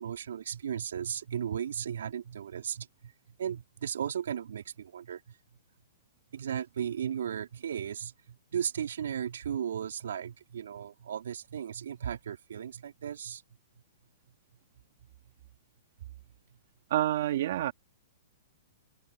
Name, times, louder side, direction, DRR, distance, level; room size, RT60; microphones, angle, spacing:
voice 1, 0.0-3.1 3.4-5.4 6.3-13.4, right 8 dB, 90° right, 4.7 m, -36 dB
voice 2, 16.9-17.7, right 13 dB, 50° right, 3.2 m, -28 dB
open air
hypercardioid pair, 170°, 0 cm